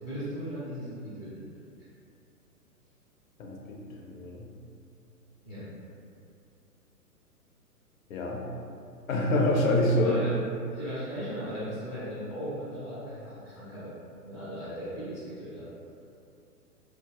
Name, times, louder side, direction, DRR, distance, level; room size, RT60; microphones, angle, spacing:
voice 1, 0.0-1.4 5.4-5.7 10.0-10.5 10.7-13.9 14.2-15.7, equal, 10° left, -16 dB, 0.5 m, -37 dB
voice 2, 3.4-4.5 8.1-8.5 9.1-10.2, left 1 dB, 60° left, -1 dB, 0.6 m, -26 dB
2.8 x 2.2 x 2.7 m, 2.5 s
figure-of-eight pair, 120°, 47 cm